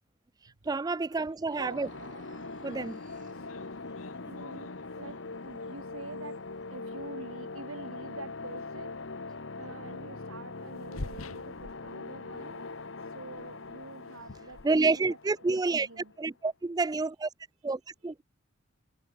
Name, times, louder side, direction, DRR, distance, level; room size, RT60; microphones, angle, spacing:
voice 1, 0.7-1.9 2.6-3.0 14.6-17.3 17.6-18.2, right 3 dB, 20° right, 0.3 m, -29 dB
sound 1, 1.3-7.5, right 4 dB, 40° right, 3.5 m, -58 dB
sound 2, 1.5-16.2, left 3 dB, 60° left, 1.2 m, -42 dB
sound 3, 2.8-2.9 3.3-5.4 6.5-6.6 8.4-8.6 8.9-9.0 10.6-12.4 12.7-13.0 13.3-15.4, left 2 dB, 85° left, 1.3 m, -47 dB
voice 2, 4.3-9.0 9.2-12.7 13.0-15.2 15.5-16.1 18.0-18.1, right 3 dB, 75° right, 1.8 m, -47 dB
head